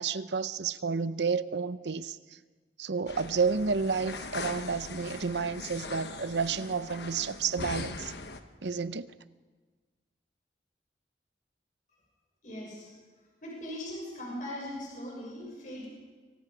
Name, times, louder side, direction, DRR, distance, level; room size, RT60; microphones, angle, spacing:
voice 1, 0.0-2.2 2.8-8.1 8.6-9.1, right 5 dB, 80° right, 0.7 m, -30 dB
sound 1, 3.1-8.4, left 3 dB, 70° left, 1.2 m, -41 dB
voice 2, 12.4-12.9 13.4-15.9, left 1 dB, 45° left, 6.3 m, -40 dB
25.0 x 24.0 x 5.1 m
head